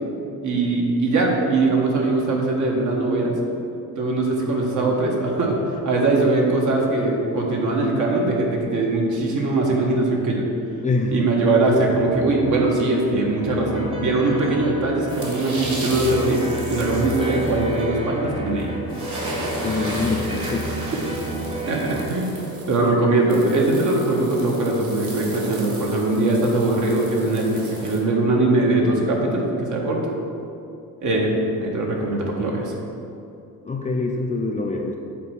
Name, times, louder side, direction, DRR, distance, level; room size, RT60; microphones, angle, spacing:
voice 1, 0.4-3.3 4.0-10.4 11.1-16.4 16.7-18.7 20.9-21.0 21.7-22.3 22.7-30.1 31.0-31.3 31.6-32.7, right 2 dB, 55° right, -1 dB, 1.6 m, -21 dB
voice 2, 10.8-11.2 19.6-20.7 33.6-35.0, left 3 dB, 20° left, 1 dB, 0.5 m, -24 dB
sound 1, 11.9-22.0, right 1 dB, 15° right, 0.8 m, -31 dB
sound 2, 15.1-17.8 18.6-18.7 18.9-28.0, right 2 dB, 40° right, 1.9 m, -35 dB
8.3 x 4.4 x 6.4 m, 2.6 s
cardioid pair, 155°, 36 cm